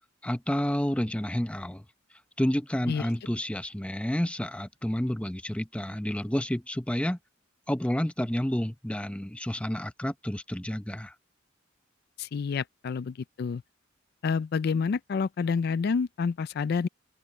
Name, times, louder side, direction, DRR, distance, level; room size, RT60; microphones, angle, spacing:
voice 1, 0.2-1.9 2.4-7.2 7.7-11.1, equal, 5° left, 0.7 m, -30 dB
voice 2, 12.2-13.6 14.2-16.9, left 5 dB, 55° left, 0.3 m, -28 dB
open air
head